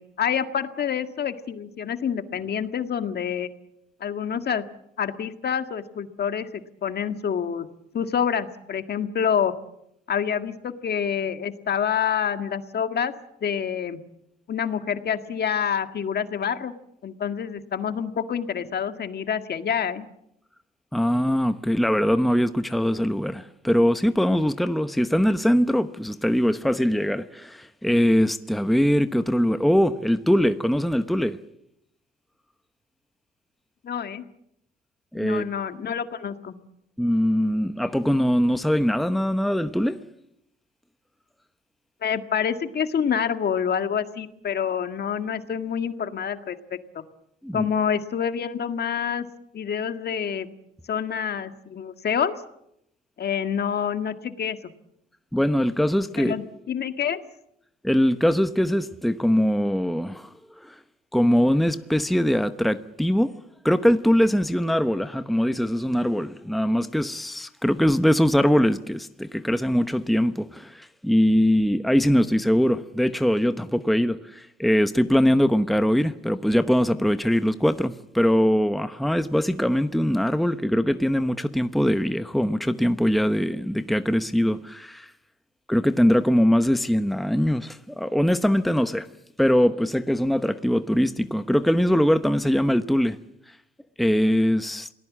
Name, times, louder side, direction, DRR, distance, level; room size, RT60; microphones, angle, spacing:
voice 1, 0.0-3.5 4.0-4.6 5.0-7.6 7.9-9.5 10.1-13.1 13.4-14.0 14.5-16.7 17.0-20.1 33.8-34.2 35.2-36.6 42.0-46.6 46.9-47.0 47.5-49.2 49.5-50.5 50.9-52.3 53.2-54.6 56.2-57.2, left 8 dB, 55° left, 1.8 m, -27 dB
voice 2, 20.9-31.4 35.1-35.4 37.0-40.0 47.4-47.6 55.3-56.4 57.8-60.3 60.6-60.7 61.1-63.4 63.6-85.1 85.7-89.1 89.4-93.2 94.0-94.9, equal, ahead, 0.9 m, -22 dB
27.5 x 19.0 x 7.4 m
cardioid pair, 90°, 20 cm